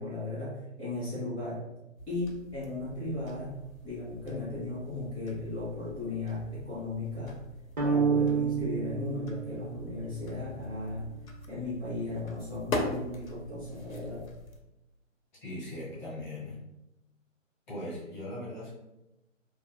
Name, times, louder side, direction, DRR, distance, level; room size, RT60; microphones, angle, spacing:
voice 1, 0.0-1.6 2.0-3.6 3.8-7.4 7.8-11.1 11.5-14.2, left 2 dB, 20° right, -12 dB, 1.2 m, -36 dB
sound 1, 2.0-14.6, left 2 dB, 85° left, 0.7 m, -42 dB
sound 2, 7.8-10.1, right 6 dB, 35° right, 0.5 m, -29 dB
voice 2, 15.4-16.6 17.7-18.8, left 1 dB, 35° left, -6 dB, 1.1 m, -39 dB
2.9 x 2.4 x 2.2 m, 0.92 s
hypercardioid pair, 150°, 39 cm